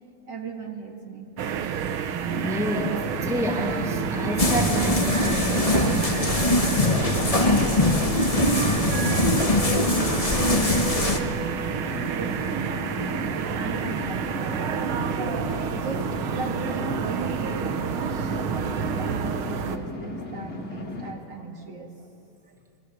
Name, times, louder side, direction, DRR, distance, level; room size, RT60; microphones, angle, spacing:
voice 1, 0.3-1.3 11.7-14.7 15.2-22.1, right 4 dB, 55° right, 1 dB, 2.6 m, -37 dB
sound 1, 1.4-19.8, right 7 dB, 75° right, 1.9 m, -29 dB
sound 2, 2.3-21.1, left 3 dB, 50° left, 2.7 m, -36 dB
voice 2, 2.4-6.5, equal, ahead, 0 dB, 2.3 m, -30 dB
sound 3, 4.4-11.2, left 2 dB, 20° left, 1.2 m, -22 dB
27.0 x 21.5 x 7.2 m, 2.5 s
omnidirectional pair, 2.3 m